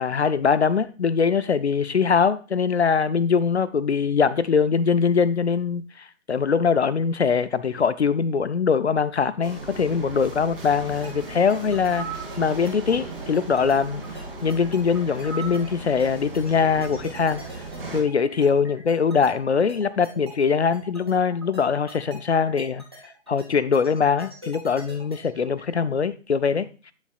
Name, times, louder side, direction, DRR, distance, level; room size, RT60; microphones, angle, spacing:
voice 1, 0.0-12.1 12.4-14.0 14.4-17.4 17.9-22.8 23.3-26.9, left 6 dB, 55° left, 0.5 m, -22 dB
sound 1, 9.4-18.0, right 2 dB, 45° right, 2.1 m, -37 dB
sound 2, 11.0-25.7, right 1 dB, 20° right, 0.8 m, -44 dB
sound 3, 11.9-12.3 15.2-15.6, right 5 dB, 5° left, 1.1 m, -34 dB
7.9 x 7.2 x 2.4 m
hypercardioid pair, 180°, 40 cm